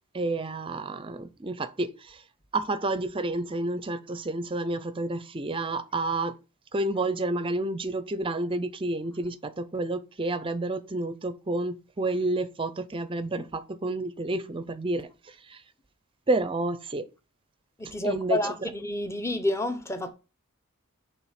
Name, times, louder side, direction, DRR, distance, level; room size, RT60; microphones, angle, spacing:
voice 1, 0.1-2.2 2.5-6.3 6.7-15.1 15.5-15.6 16.3-17.1 18.0-18.4, right 2 dB, 25° right, 0.5 m, -30 dB
voice 2, 17.8-20.1, left 2 dB, 10° left, 0.7 m, -29 dB
5.9 x 3.5 x 5.7 m
head